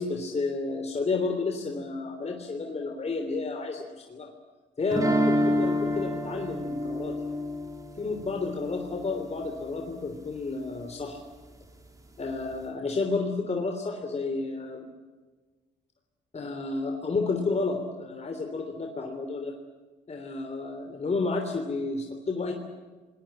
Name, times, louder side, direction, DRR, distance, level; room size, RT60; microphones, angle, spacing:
voice 1, 0.0-4.3 4.8-7.4 8.0-11.2 12.2-14.9 16.3-19.5 20.1-22.5, left 3 dB, 35° left, 3 dB, 3.3 m, -31 dB
sound 1, 4.9-9.8, equal, 15° right, 3.8 m, -29 dB
26.0 x 20.5 x 8.8 m, 1.3 s
cardioid pair, 90°, 20 cm